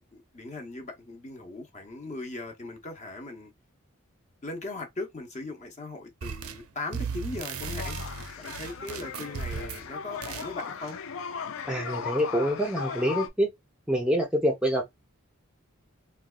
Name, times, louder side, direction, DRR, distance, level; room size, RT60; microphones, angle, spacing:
voice 1, 0.1-3.5 4.4-8.0 8.4-11.0, left 2 dB, 35° left, 0.7 m, -39 dB
sound 1, 6.2-6.7 6.9-9.9 10.2-10.5, right 5 dB, 85° right, 0.5 m, -36 dB
sound 2, 7.6-13.3, left 6 dB, 70° left, 0.4 m, -37 dB
voice 2, 11.7-13.5 13.9-14.8, equal, 5° right, 0.6 m, -26 dB
3.9 x 2.2 x 2.3 m
head